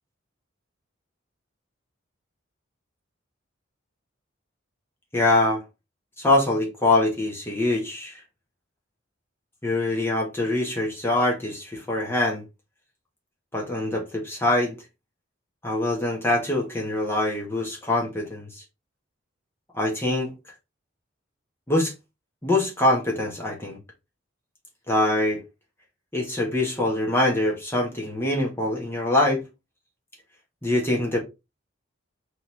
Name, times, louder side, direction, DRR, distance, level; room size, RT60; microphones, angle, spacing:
voice 1, 5.1-5.6 6.2-8.2 9.6-12.4 13.5-14.7 15.6-18.5 19.7-20.3 21.7-21.9 22.4-23.8 24.9-25.4 26.1-29.4 30.6-31.2, left 2 dB, 10° left, 1.3 m, -24 dB
4.0 x 3.1 x 3.9 m
head